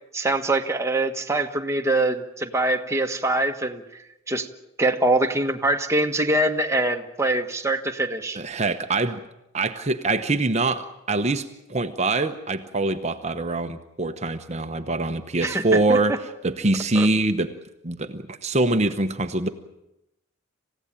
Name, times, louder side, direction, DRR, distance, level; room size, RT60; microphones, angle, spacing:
voice 1, 0.1-4.0 4.3-4.5 4.8-8.4 15.4-16.0 16.9-17.1, right 2 dB, 15° right, 4 dB, 1.4 m, -24 dB
voice 2, 8.3-9.2 9.5-17.5 17.8-19.5, right 2 dB, 30° right, 8 dB, 0.9 m, -24 dB
27.5 x 16.5 x 8.9 m, 0.89 s
head